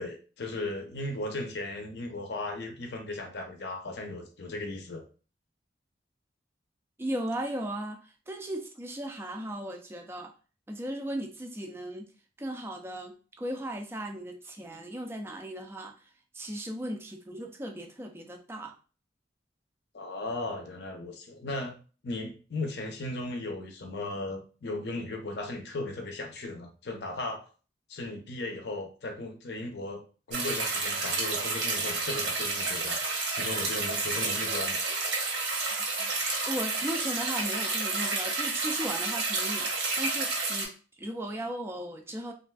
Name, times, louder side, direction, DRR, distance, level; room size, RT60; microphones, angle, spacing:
voice 1, 0.0-5.0 19.9-21.7 22.0-27.5 27.9-30.0 30.3-33.0 33.3-34.8, left 2 dB, 65° left, 3 dB, 0.6 m, -36 dB
voice 2, 7.0-10.3 10.7-12.1 12.4-15.9 16.3-18.7 36.0-40.7 41.0-42.3, right 1 dB, 15° right, 3 dB, 0.4 m, -36 dB
sound 1, 30.3-40.6, right 3 dB, 85° right, 1.0 m, -30 dB
3.3 x 2.4 x 2.2 m, 0.36 s
head